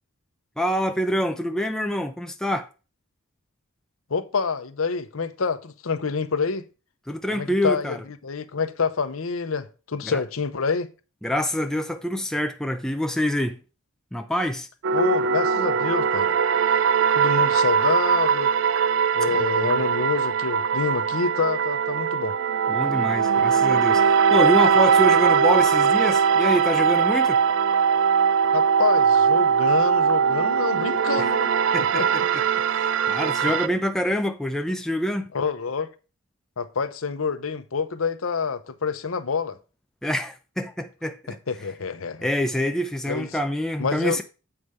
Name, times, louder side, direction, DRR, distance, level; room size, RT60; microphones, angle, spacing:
voice 1, 0.6-2.7 7.1-8.0 10.0-10.2 11.2-13.6 14.1-14.7 19.3-19.9 22.7-27.4 31.2-31.3 31.7-32.4 32.7-35.3 40.0-41.4 42.2-44.2, equal, 5° left, 0.5 m, -26 dB
voice 2, 4.1-6.7 7.3-8.0 8.2-10.9 14.9-16.4 17.1-18.5 19.1-22.3 28.5-31.5 31.8-32.1 33.4-33.5 35.3-35.9 36.6-39.6 41.5-42.3 43.1-43.3 43.8-44.2, left 5 dB, 85° left, 0.8 m, -27 dB
sound 1, 14.8-33.7, right 6 dB, 65° right, 0.4 m, -20 dB
7.8 x 4.9 x 5.4 m
head